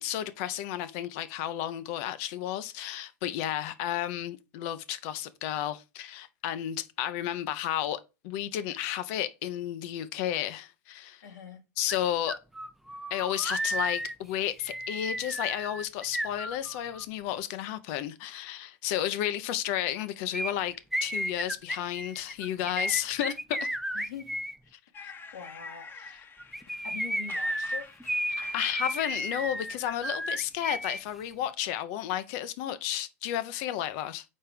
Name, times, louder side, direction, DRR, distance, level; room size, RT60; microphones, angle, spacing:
voice 1, 0.0-11.2 11.8-12.4 13.1-20.7 21.0-23.7 25.0-25.1 28.3-34.2, left 12 dB, 55° left, 0.9 m, -32 dB
voice 2, 11.2-11.6 22.7-23.0 23.9-24.4 24.6-24.7 25.3-25.9 26.8-27.8, left 6 dB, 80° left, 2.0 m, -43 dB
sound 1, 11.9-12.0 12.3-17.0 20.3-24.5 26.4-31.0 31.3-31.4, equal, ahead, 0.5 m, -33 dB
sound 2, 24.9-29.8, left 4 dB, 25° left, 1.0 m, -49 dB
5.4 x 4.4 x 5.2 m
hypercardioid pair, 105°, 9 cm